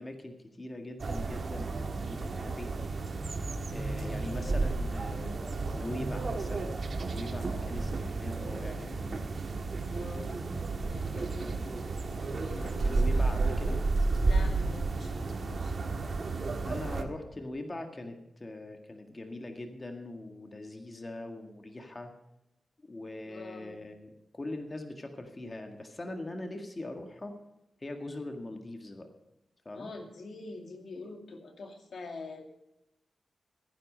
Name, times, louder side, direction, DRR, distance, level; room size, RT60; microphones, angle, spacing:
voice 1, 0.0-2.7 3.7-5.4 5.7-9.3 12.5-13.8 16.6-22.1 22.9-27.4 27.8-29.1 29.7-29.9, left 2 dB, 30° left, 5 dB, 1.9 m, -41 dB
sound 1, 1.0-17.0, right 3 dB, 55° right, 1.6 m, -32 dB
voice 2, 4.0-4.6 9.9-10.4 10.8-11.7 12.1-13.3 14.2-16.0 23.3-23.8 29.7-32.4, left 3 dB, 70° left, 4 dB, 2.2 m, -45 dB
15.0 x 10.0 x 5.4 m, 0.88 s
cardioid pair, 75°, 0 cm